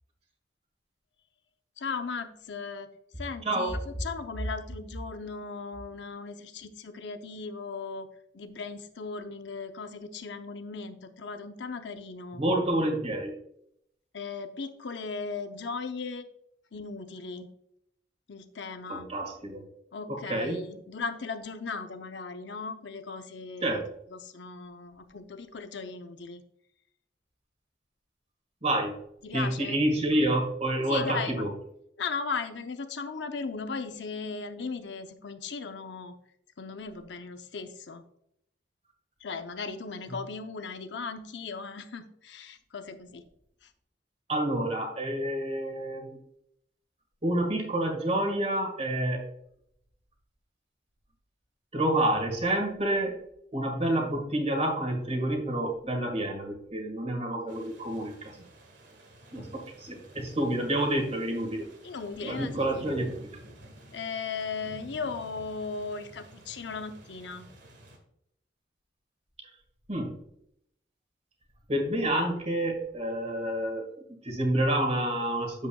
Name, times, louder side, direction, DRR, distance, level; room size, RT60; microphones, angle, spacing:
voice 1, 1.8-2.9 3.2-8.1 8.3-12.4 14.1-16.3 16.7-17.5 18.3-19.1 19.9-23.8 24.1-26.4 29.2-29.8 30.9-31.4 32.0-36.2 36.6-38.0 39.2-43.2 59.4-59.5 61.8-62.9 63.9-67.5, left 4 dB, 70° left, 8 dB, 0.7 m, -37 dB
voice 2, 3.4-3.7 12.3-13.3 18.9-19.6 20.1-20.6 23.6-23.9 28.6-29.0 29.3-31.5 44.3-46.2 47.2-49.2 51.7-53.2 53.5-58.3 59.3-61.6 62.2-63.1 69.9-70.2 71.7-75.7, right 1 dB, 35° right, 3 dB, 1.8 m, -28 dB
sound 1, 57.5-68.0, equal, 75° right, 1.9 m, -50 dB
8.7 x 7.9 x 2.3 m, 0.74 s
head